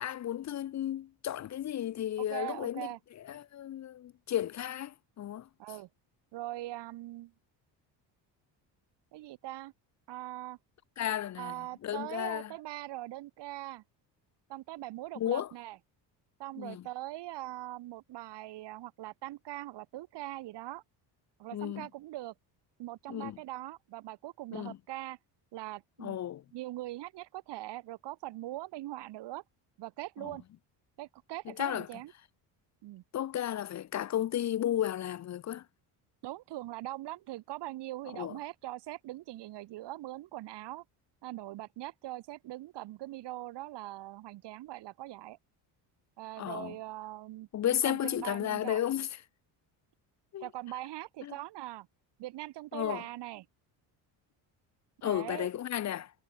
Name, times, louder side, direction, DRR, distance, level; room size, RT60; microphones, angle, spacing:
voice 1, 0.0-2.9 3.3-5.5 11.0-11.5 11.8-12.5 15.2-15.5 16.6-16.8 21.5-21.9 23.1-23.4 24.5-24.8 26.0-26.4 30.2-30.3 31.5-31.9 33.1-35.6 38.1-38.4 46.4-46.8 47.5-49.1 50.3-50.4 51.2-51.3 52.7-53.0 55.0-56.1, left 11 dB, 40° left, 0.7 m, -33 dB
voice 2, 2.2-3.0 5.6-5.9 6.3-7.3 9.1-9.7 10.1-10.6 11.3-13.8 14.5-15.8 16.4-20.8 21.4-22.3 22.8-25.2 25.5-26.2 26.5-29.4 29.8-30.4 31.0-32.1 32.8-33.0 36.2-40.8 41.2-45.4 46.2-48.8 50.4-51.9 52.2-53.5 55.0-55.5, right 16 dB, 75° right, 4.1 m, -41 dB
cardioid pair, 110°, 42 cm